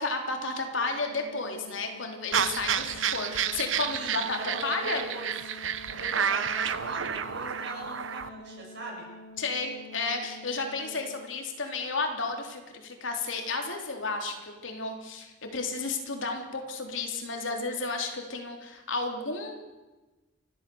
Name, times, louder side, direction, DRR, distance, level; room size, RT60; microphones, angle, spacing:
voice 1, 0.0-5.0 9.4-19.6, left 3 dB, 85° left, 3 dB, 3.4 m, -32 dB
Organ, 0.7-11.6, left 1 dB, 60° left, 5.5 m, -48 dB
sound 1, 2.3-8.3, right 7 dB, 90° right, 1.0 m, -30 dB
voice 2, 3.9-5.3 6.0-9.1, right 2 dB, 65° right, -2 dB, 7.5 m, -41 dB
29.5 x 13.0 x 7.0 m, 1.2 s
head